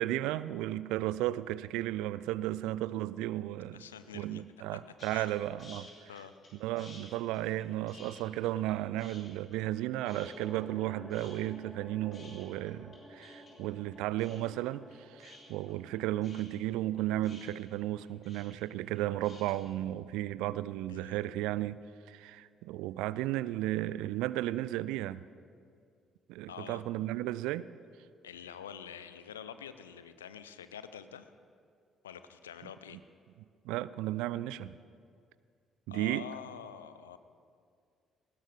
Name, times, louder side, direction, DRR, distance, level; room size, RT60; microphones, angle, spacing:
voice 1, 0.0-3.9 4.1-6.1 6.6-21.8 22.1-25.2 26.3-27.7 33.6-34.8 35.9-36.3, right 15 dB, 65° right, 0.3 m, -34 dB
voice 2, 3.7-4.4 4.7-5.3 5.8-6.4 20.9-21.2 26.5-26.8 28.2-31.3 32.0-33.0 35.9-37.2, left 8 dB, 80° left, 0.5 m, -47 dB
sound 1, 5.0-5.3 5.6-6.5 6.8-8.7 9.0-9.8 10.1-10.8 11.1-19.5, left 2 dB, 40° left, 4.9 m, -54 dB
sound 2, 10.0-16.3, left 1 dB, 20° left, 2.0 m, -52 dB
20.0 x 16.5 x 3.6 m
figure-of-eight pair, 45°, 0 cm